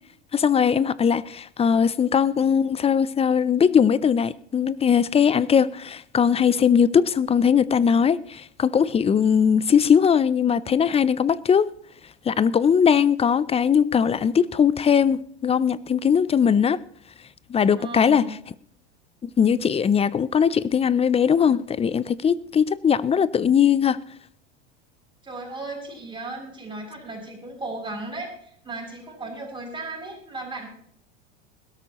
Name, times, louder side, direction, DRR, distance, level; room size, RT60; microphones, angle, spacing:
voice 1, 0.3-11.7 12.3-16.8 17.5-18.3 19.2-24.0, left 7 dB, 15° left, 0.4 m, -20 dB
voice 2, 17.7-18.4 25.2-30.7, right 2 dB, 15° right, 6.6 m, -36 dB
20.5 x 13.0 x 3.0 m
hypercardioid pair, 100°, 36 cm